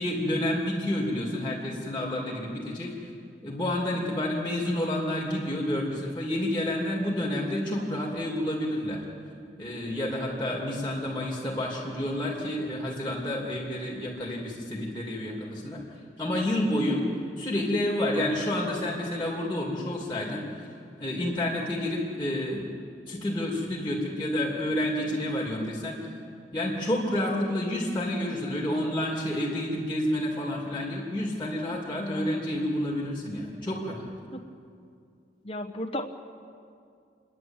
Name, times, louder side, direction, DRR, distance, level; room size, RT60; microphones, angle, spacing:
voice 1, 0.0-2.9 3.4-9.0 9.6-15.8 16.2-17.0 17.4-20.7 21.0-22.7 23.1-26.1 26.5-34.1, left 1 dB, 10° left, -3 dB, 2.8 m, -29 dB
voice 2, 32.0-32.8 35.4-36.1, left 1 dB, 30° left, 3 dB, 1.2 m, -35 dB
29.0 x 11.0 x 9.0 m, 2.4 s
head